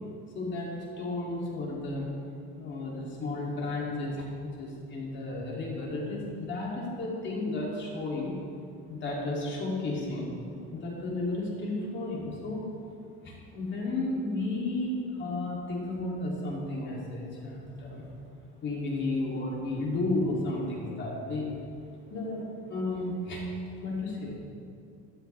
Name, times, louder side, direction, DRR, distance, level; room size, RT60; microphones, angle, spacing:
voice 1, 0.3-0.7 1.0-2.1 2.5-8.3 8.9-10.3 10.7-12.6 13.2-18.1 18.6-21.6 22.1-22.4 22.7-23.4 23.8-24.3, left 2 dB, 35° left, -3 dB, 3.0 m, -33 dB
13.5 x 12.5 x 3.5 m, 2.4 s
cardioid pair, 135°, 31 cm